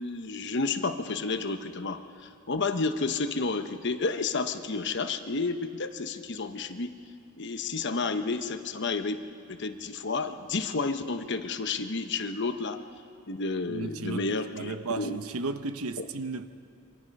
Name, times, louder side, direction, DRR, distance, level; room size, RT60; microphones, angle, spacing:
voice 1, 0.0-6.9 7.4-9.2 9.5-12.8 13.3-15.2 16.0-16.1, left 3 dB, 55° left, 1.1 m, -31 dB
voice 2, 13.7-16.5, right 3 dB, 90° right, 1.0 m, -34 dB
28.5 x 25.0 x 5.4 m
head